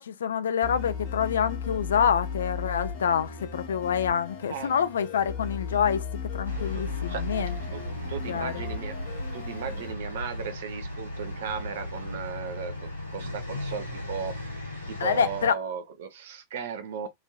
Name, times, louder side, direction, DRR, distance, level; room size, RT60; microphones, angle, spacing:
voice 1, 0.0-6.1 6.3-8.6 15.0-15.5, left 7 dB, 65° left, 0.3 m, -27 dB
sound 1, 0.6-9.9, left 6 dB, 50° left, 1.1 m, -36 dB
sound 2, 6.4-15.5, left 1 dB, 90° left, 1.0 m, -36 dB
voice 2, 7.1-7.8 8.1-9.0 9.3-14.3 14.9-17.1, right 7 dB, 55° right, 0.5 m, -36 dB
3.0 x 2.6 x 2.3 m
figure-of-eight pair, 90°, 0 cm